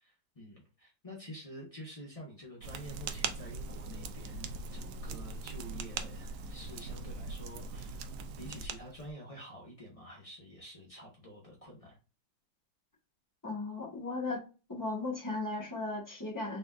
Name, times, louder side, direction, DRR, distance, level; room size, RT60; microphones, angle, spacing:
voice 1, 0.0-8.0 8.4-12.0, equal, 40° left, -3 dB, 0.5 m, -48 dB
sound 1, 2.6-9.1, right 4 dB, 80° right, 0.9 m, -41 dB
voice 2, 13.4-14.4 14.7-16.6, left 2 dB, 15° left, -2 dB, 0.8 m, -36 dB
5.0 x 3.5 x 2.4 m, 0.33 s
omnidirectional pair, 2.4 m